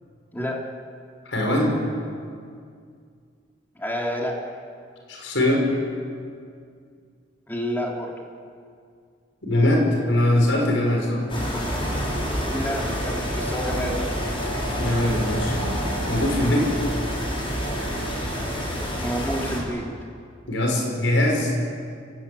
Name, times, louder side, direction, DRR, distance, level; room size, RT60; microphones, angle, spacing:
voice 1, 0.3-0.6 3.8-4.4 7.5-8.1 12.5-14.1 19.0-19.9, equal, 10° left, -1 dB, 3.6 m, -29 dB
voice 2, 1.3-1.7 5.1-5.7 9.4-11.2 14.8-15.6 16.1-16.7 20.5-21.5, left 1 dB, 90° left, 0 dB, 5.7 m, -21 dB
sound 1, 11.3-19.6, equal, 30° left, 5.6 m, -27 dB
29.5 x 18.0 x 8.7 m, 2.3 s
head